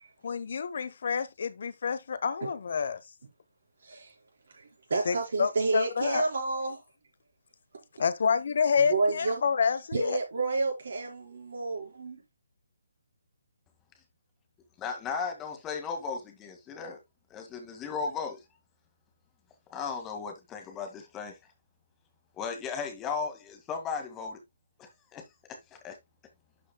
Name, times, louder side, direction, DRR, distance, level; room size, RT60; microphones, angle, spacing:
voice 1, 0.2-3.0 5.1-6.2 8.0-10.2, left 6 dB, 55° left, 0.9 m, -28 dB
voice 2, 3.8-4.1 4.6-6.8 8.8-9.4 9.9-12.2, right 3 dB, 60° right, 4.5 m, -30 dB
voice 3, 14.8-17.0 17.3-18.4 19.7-21.4 22.4-24.4 24.8-25.2 25.5-26.0, left 5 dB, 15° left, 1.9 m, -36 dB
11.5 x 6.2 x 2.2 m
figure-of-eight pair, 140°, 0 cm